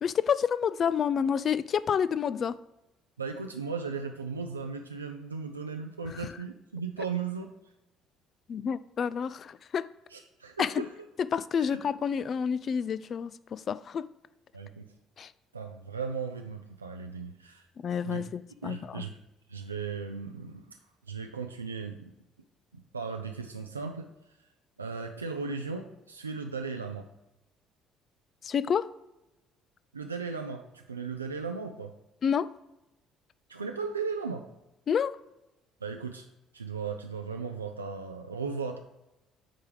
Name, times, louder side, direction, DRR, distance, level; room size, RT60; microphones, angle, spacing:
voice 1, 0.0-2.6 8.5-9.9 10.6-10.9 11.2-14.1 15.2-15.3 17.8-19.0 28.4-28.9 32.2-32.5 34.9-35.1, left 7 dB, 45° left, 16 dB, 0.3 m, -29 dB
voice 2, 3.2-7.5 10.1-10.9 11.7-11.8 14.5-14.9 15.5-17.7 18.0-18.2 18.6-19.2 19.5-20.8 21.0-22.1 22.7-24.4 24.8-27.1 29.9-31.9 33.5-34.5 35.8-36.3 36.5-38.8, right 5 dB, 90° right, 3 dB, 0.4 m, -36 dB
8.9 x 3.4 x 4.7 m, 0.97 s
figure-of-eight pair, 50°, 0 cm